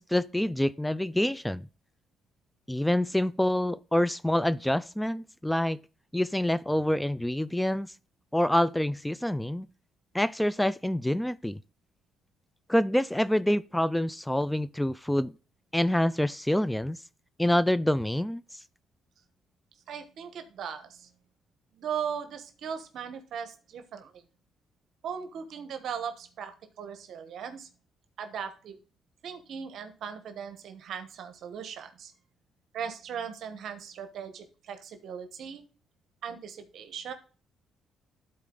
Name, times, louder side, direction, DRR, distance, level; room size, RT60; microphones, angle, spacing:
voice 1, 0.0-1.7 2.7-5.8 6.1-7.9 8.3-9.7 10.1-11.6 12.7-15.3 15.7-17.0 17.4-18.6, left 1 dB, 5° left, 0.4 m, -26 dB
voice 2, 19.9-21.1 21.7-24.2 25.0-27.7 28.2-28.8 29.2-32.1 32.7-35.6 36.2-37.1, right 7 dB, 70° right, 1.1 m, -38 dB
11.5 x 4.3 x 3.8 m
cardioid pair, 90°, 0 cm